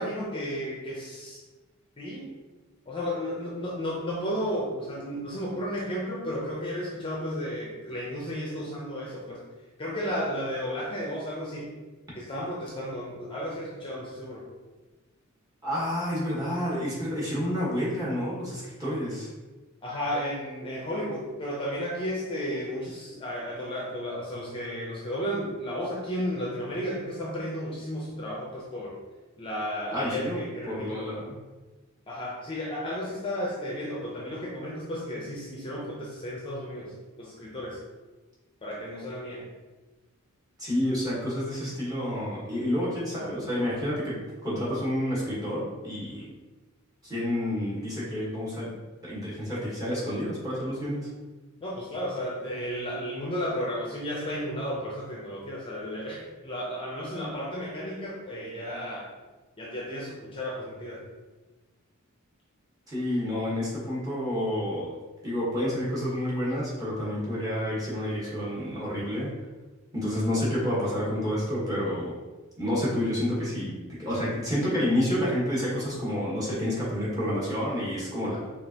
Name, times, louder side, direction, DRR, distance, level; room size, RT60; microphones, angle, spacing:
voice 1, 0.0-1.4 2.0-2.4 2.9-9.4 9.8-11.7 12.1-14.4 19.8-29.0 29.4-31.0 32.1-36.9 37.2-37.8 38.6-39.5 51.6-59.1 59.6-61.0, equal, 25° left, -4 dB, 0.7 m, -33 dB
voice 2, 15.6-19.3 29.9-31.4 40.6-46.3 47.0-51.1 62.9-65.0 65.2-69.3 69.9-72.1 72.6-78.5, equal, 15° right, -8 dB, 1.4 m, -29 dB
5.1 x 2.5 x 2.9 m, 1.2 s
head